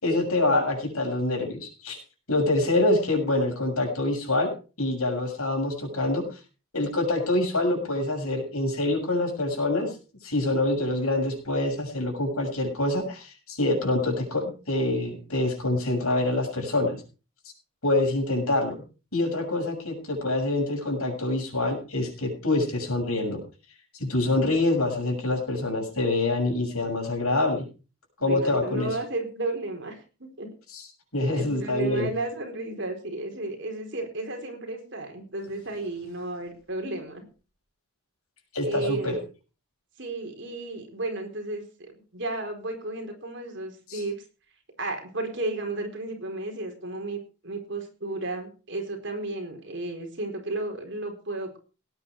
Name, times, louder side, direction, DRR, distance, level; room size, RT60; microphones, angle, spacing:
voice 1, 0.0-2.0 2.3-4.5 4.8-6.4 6.7-9.9 10.2-17.0 17.8-18.7 19.1-23.4 23.9-27.6 28.2-29.0 30.7-30.9 31.1-32.1 38.5-39.2 43.9-44.0, left 2 dB, 85° left, 2 dB, 7.0 m, -26 dB
voice 2, 28.2-30.5 31.3-37.2 38.6-39.2 40.0-44.2 44.8-51.6, right 2 dB, 55° right, 4 dB, 4.4 m, -33 dB
18.0 x 9.9 x 4.8 m, 0.35 s
head